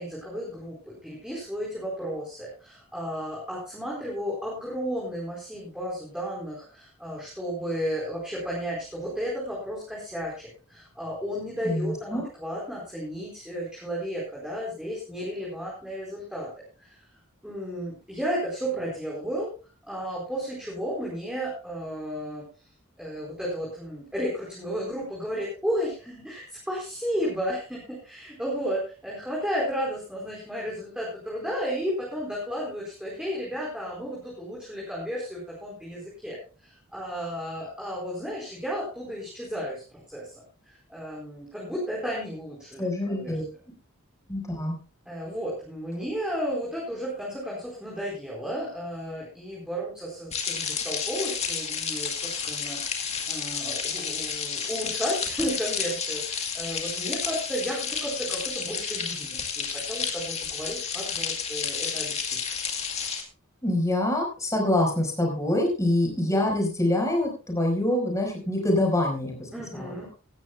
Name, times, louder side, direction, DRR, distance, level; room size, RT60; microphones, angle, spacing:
voice 1, 0.0-16.5 16.8-17.1 17.4-19.5 19.9-22.4 23.0-43.4 45.1-62.4 69.5-70.1, equal, 5° right, -4 dB, 4.3 m, -33 dB
voice 2, 11.6-12.2 42.8-43.4 44.3-44.7 63.6-70.1, left 1 dB, 15° left, 1 dB, 4.8 m, -25 dB
sound 1, 50.3-63.2, left 6 dB, 30° left, 2.1 m, -31 dB
17.5 x 13.0 x 2.3 m, 0.34 s
head